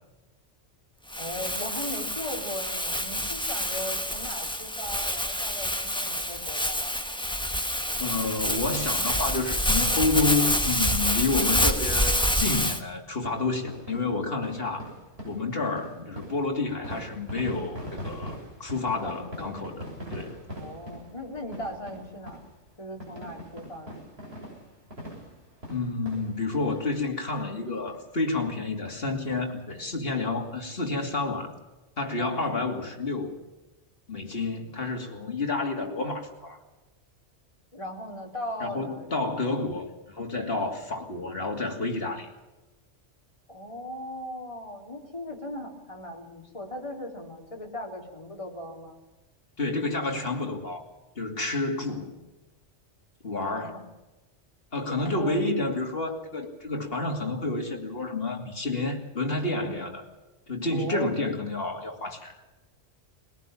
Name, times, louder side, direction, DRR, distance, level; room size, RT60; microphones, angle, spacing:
Crumpling crinkling, 1.1-12.8, equal, 5° left, 1.3 m, -27 dB
voice 1, 1.2-7.0 17.5-17.8 19.0-19.8 20.6-22.4 22.8-24.1 32.2-32.5 37.7-39.2 43.5-49.0 53.5-53.8 54.9-55.6 60.7-61.1, left 1 dB, 25° left, 0 dB, 3.6 m, -38 dB
voice 2, 8.0-14.9 15.2-18.3 18.6-19.8 20.1-20.4 25.7-31.5 32.0-33.4 34.1-36.6 38.6-42.3 49.6-50.9 51.1-52.1 53.2-53.8 54.7-60.1 60.5-62.3, left 3 dB, 50° left, 2 dB, 2.9 m, -29 dB
sound 1, 13.3-27.0 27.3-27.5 27.9-28.0 28.4-28.5 28.9-29.8 30.2-30.3 30.5-30.6, equal, 55° right, 7.4 m, -42 dB
21.5 x 18.0 x 7.3 m, 1.1 s
omnidirectional pair, 1.2 m